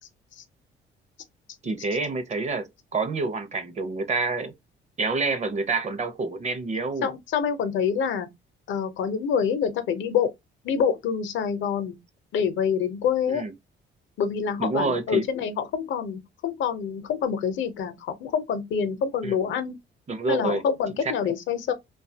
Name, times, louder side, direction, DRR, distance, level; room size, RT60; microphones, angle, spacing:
voice 1, 1.6-4.5 5.0-7.1 13.3-13.5 14.6-15.2 19.2-19.3 20.1-20.6, right 3 dB, 35° right, 0.6 m, -28 dB
voice 2, 7.0-8.3 8.7-10.3 10.6-12.0 12.3-13.4 14.2-19.7 20.3-21.7, left 7 dB, 75° left, 0.7 m, -26 dB
2.7 x 2.3 x 2.7 m
cardioid pair, 90°, 20 cm